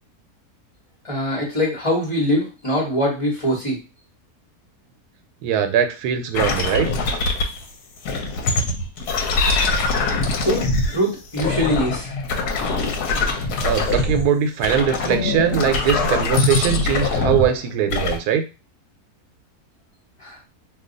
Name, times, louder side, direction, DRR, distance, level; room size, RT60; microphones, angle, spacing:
voice 1, 1.0-3.8 10.4-10.7 10.9-12.1 20.2-20.4, equal, 25° left, -2 dB, 1.0 m, -22 dB
voice 2, 5.4-6.9 13.6-18.4, right 8 dB, 80° right, 7 dB, 1.1 m, -21 dB
sound 1, 6.3-7.6 8.0-11.0 11.3-14.2 14.6-17.6 17.9-18.2, left 3 dB, 80° left, 1.2 m, -22 dB
2.7 x 2.3 x 3.8 m, 0.30 s
omnidirectional pair, 1.6 m